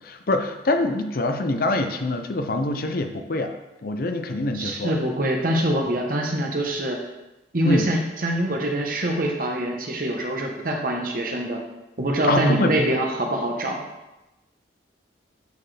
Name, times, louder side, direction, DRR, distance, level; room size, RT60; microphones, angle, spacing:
voice 1, 0.0-3.5 3.8-4.9 5.8-5.9 7.6-7.9 12.3-12.7, left 2 dB, 50° left, 6 dB, 0.6 m, -24 dB
voice 2, 4.5-7.0 7.5-11.6 12.0-13.9, right 1 dB, 50° right, 1 dB, 1.0 m, -24 dB
9.4 x 4.5 x 3.3 m, 1.0 s
head